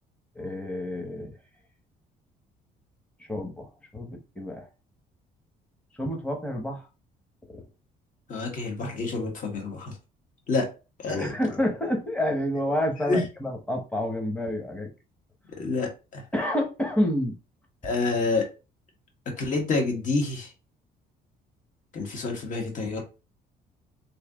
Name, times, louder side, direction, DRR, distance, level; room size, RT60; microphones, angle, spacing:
voice 1, 0.4-1.3 3.3-3.7 3.9-4.6 6.0-6.8 11.1-14.9 16.3-17.3, left 1 dB, 5° left, 1.1 m, -28 dB
voice 2, 8.3-9.9 10.5-10.7 11.0-11.3 13.1-13.2 15.6-16.2 17.8-18.4 19.4-20.5 21.9-23.0, left 3 dB, 50° left, 1.6 m, -28 dB
3.2 x 2.8 x 3.7 m
cardioid pair, 110°, 17 cm